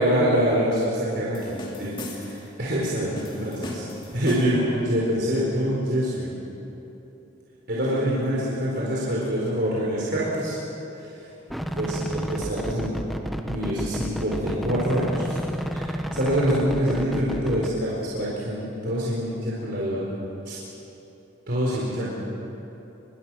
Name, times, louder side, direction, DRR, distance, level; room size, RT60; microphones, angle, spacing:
voice 1, 0.0-3.8 4.1-6.3 7.7-10.6 11.0-11.3 11.7-12.9 13.5-15.4 15.7-20.1 20.5-20.6 21.5-22.1, equal, 60° right, -6 dB, 4.5 m, -25 dB
sound 1, 1.3-2.5 3.2-4.7, left 1 dB, 25° left, 2.8 m, -38 dB
sound 2, 11.5-17.7, equal, ahead, 1.2 m, -31 dB
26.5 x 22.0 x 6.3 m, 3.0 s
head